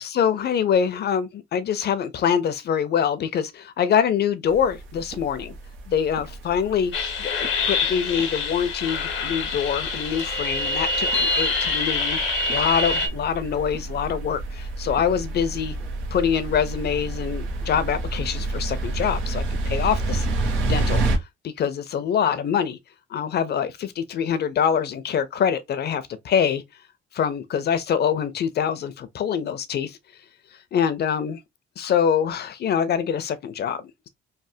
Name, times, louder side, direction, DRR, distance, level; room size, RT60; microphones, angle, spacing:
voice 1, 0.0-5.5 5.9-6.9 7.2-12.2 12.5-15.7 16.1-20.3 20.6-21.0 21.4-22.8 23.1-26.6 27.1-30.0 30.7-31.4 31.8-34.1, left 8 dB, 55° left, 0.6 m, -24 dB
sound 1, 4.5-21.2, right 2 dB, 85° right, 0.9 m, -30 dB
sound 2, 6.9-13.1, left 3 dB, 85° left, 1.0 m, -25 dB
3.2 x 2.1 x 2.6 m
cardioid pair, 90°, 20 cm